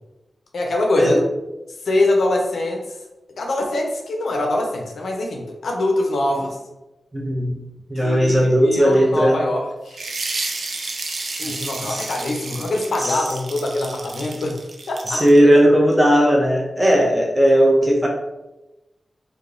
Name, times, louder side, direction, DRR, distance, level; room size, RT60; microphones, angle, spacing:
voice 1, 0.5-1.2 1.8-3.0 3.4-6.6 8.0-10.0 11.4-14.6 14.9-15.2, left 2 dB, 80° left, 1 dB, 0.4 m, -23 dB
voice 2, 7.1-7.6 7.9-9.4 11.4-12.1 13.0-13.3 15.1-18.1, equal, 15° right, -2 dB, 0.7 m, -17 dB
sound 1, 9.9-15.4, right 3 dB, 70° right, 0.4 m, -31 dB
2.9 x 2.1 x 2.4 m, 1.0 s
cardioid pair, 65°, 0 cm